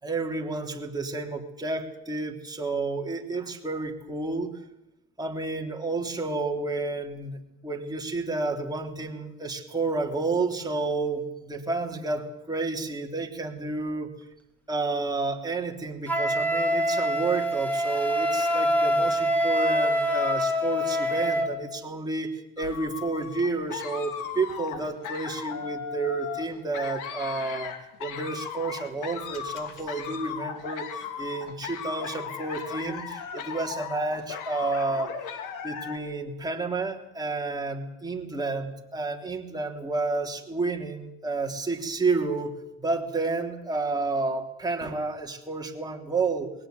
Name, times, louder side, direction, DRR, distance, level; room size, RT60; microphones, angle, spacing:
voice 1, 0.0-4.5 5.2-14.1 14.7-27.7 28.0-35.1 35.6-46.5, right 3 dB, 10° right, 2 dB, 3.3 m, -30 dB
Wind instrument woodwind instrument, 16.1-21.5, equal, 5° left, 3.5 m, -25 dB
sound 1, 22.6-36.0, left 8 dB, 75° left, 3.1 m, -37 dB
21.5 x 17.5 x 9.4 m, 0.88 s
cardioid pair, 110°, 32 cm